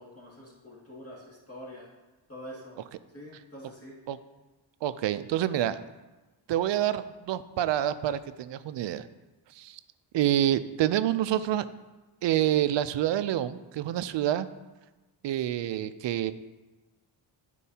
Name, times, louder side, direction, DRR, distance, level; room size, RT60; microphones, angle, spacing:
voice 1, 0.0-1.9 2.3-2.8 3.1-3.9, equal, 30° left, -6 dB, 2.1 m, -45 dB
voice 2, 4.8-5.8 6.5-9.1 9.6-9.8 10.1-11.6 12.2-14.5 15.2-16.3, right 12 dB, 65° right, 13 dB, 0.5 m, -27 dB
12.0 x 4.5 x 2.8 m, 1.2 s
cardioid pair, 80°, 48 cm